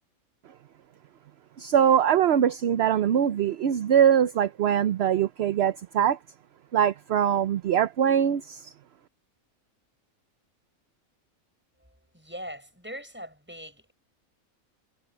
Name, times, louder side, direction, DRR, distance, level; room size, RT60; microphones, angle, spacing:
voice 1, 1.6-6.2 6.7-8.7, right 9 dB, 60° right, 0.8 m, -22 dB
voice 2, 12.1-13.9, equal, 5° right, 6.9 m, -41 dB
omnidirectional pair, 1.5 m